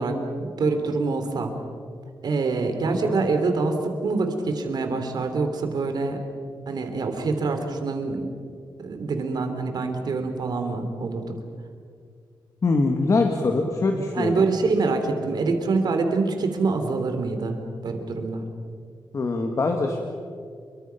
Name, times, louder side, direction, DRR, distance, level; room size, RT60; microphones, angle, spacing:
voice 1, 0.0-1.5 2.2-6.2 6.7-8.3 8.8-11.3 14.1-17.6 17.8-18.4, right 3 dB, 60° right, 6 dB, 3.2 m, -25 dB
voice 2, 12.6-14.5 19.1-20.0, left 3 dB, 40° left, 3 dB, 1.8 m, -23 dB
28.0 x 23.5 x 5.8 m, 2.2 s
wide cardioid pair, 155°, 8 cm